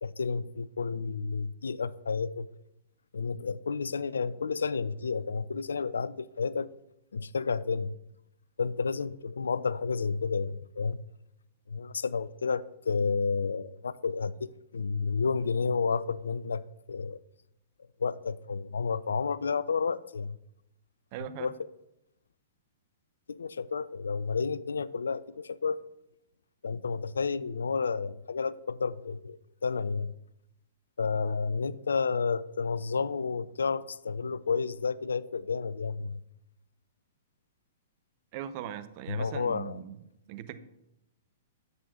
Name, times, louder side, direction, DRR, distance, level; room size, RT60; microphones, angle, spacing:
voice 1, 0.0-2.5 3.1-6.7 7.1-7.9 8.6-11.0 11.7-16.6 16.9-17.2 18.0-20.4 21.4-21.5 23.3-25.8 26.6-30.1 31.0-36.2 39.1-39.8, left 5 dB, 70° left, 0.3 m, -31 dB
voice 2, 21.1-21.5 38.3-40.0 40.3-40.6, right 10 dB, 40° right, 0.6 m, -39 dB
11.0 x 7.6 x 2.8 m
figure-of-eight pair, 105°, 0 cm